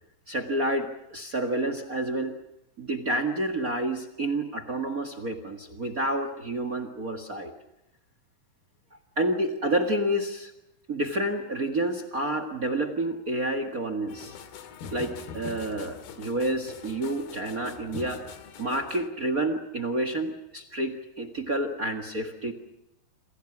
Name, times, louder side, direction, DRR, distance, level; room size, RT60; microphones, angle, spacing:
voice 1, 0.3-2.3 2.8-7.5 9.2-10.5 10.9-14.4 14.9-18.2 18.6-22.5, right 1 dB, 40° right, 9 dB, 1.3 m, -29 dB
sound 1, 14.1-19.1, left 6 dB, 85° left, 3.8 m, -43 dB
28.5 x 25.5 x 6.1 m, 0.92 s
omnidirectional pair, 4.2 m